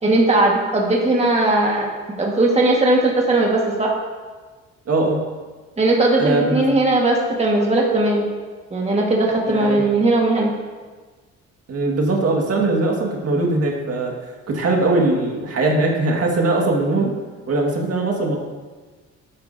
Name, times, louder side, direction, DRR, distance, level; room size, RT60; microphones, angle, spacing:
voice 1, 0.0-1.9 2.2-3.9 5.8-8.2 8.7-10.5, right 2 dB, 20° right, -1 dB, 1.6 m, -18 dB
voice 2, 4.9-5.2 6.2-6.7 9.5-9.8 11.7-14.1 14.5-17.1 17.5-18.4, right 2 dB, 50° right, 0 dB, 1.9 m, -20 dB
12.0 x 8.9 x 2.7 m, 1.4 s
cardioid pair, 90°, 30 cm